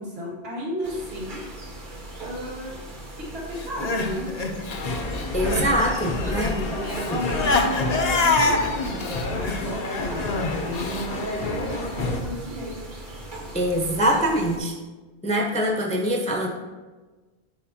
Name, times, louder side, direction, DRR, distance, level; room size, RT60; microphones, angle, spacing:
voice 1, 0.0-1.4 2.2-4.3 6.0-12.8, equal, 70° right, -6 dB, 2.3 m, -34 dB
sound 1, 0.8-14.6, right 1 dB, 50° right, 1.3 m, -40 dB
Crying sobbing, 3.6-5.8 6.0-11.1, left 3 dB, 45° left, 0.7 m, -26 dB
sound 2, 4.7-12.2, left 2 dB, 65° left, 1.0 m, -30 dB
voice 2, 5.3-6.5 7.1-7.2 13.5-14.7 15.2-16.5, right 1 dB, 5° left, -1 dB, 0.7 m, -23 dB
10.0 x 5.2 x 2.7 m, 1.3 s
omnidirectional pair, 1.1 m